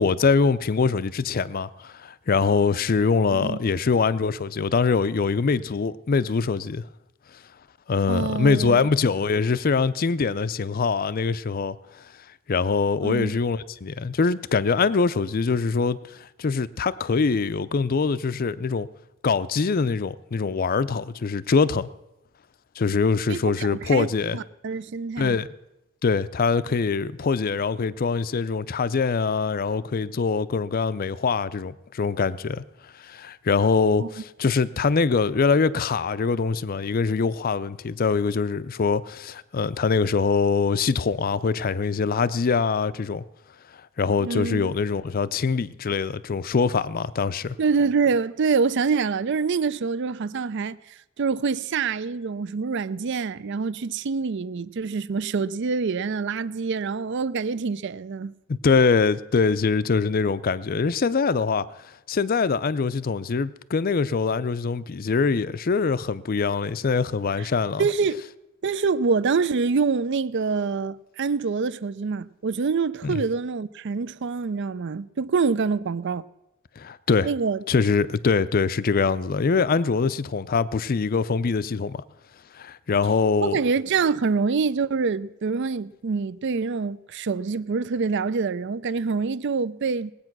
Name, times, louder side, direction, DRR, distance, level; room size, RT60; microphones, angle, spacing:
voice 1, 0.0-6.9 7.9-11.8 12.5-18.9 19.2-21.9 22.8-24.4 25.2-25.5 26.0-32.6 33.0-43.2 44.0-47.6 58.5-61.7 62.1-67.9 73.0-73.2 76.8-77.3 77.7-82.0 82.5-83.6, left 4 dB, 45° left, 0.5 m, -23 dB
voice 2, 8.1-8.9 13.0-13.3 23.3-25.4 34.0-34.1 44.2-44.7 47.6-50.8 51.2-58.3 67.4-67.5 67.8-68.2 68.6-76.3 77.2-77.6 83.4-90.1, right 5 dB, 55° right, 0.4 m, -26 dB
19.5 x 8.7 x 6.0 m
head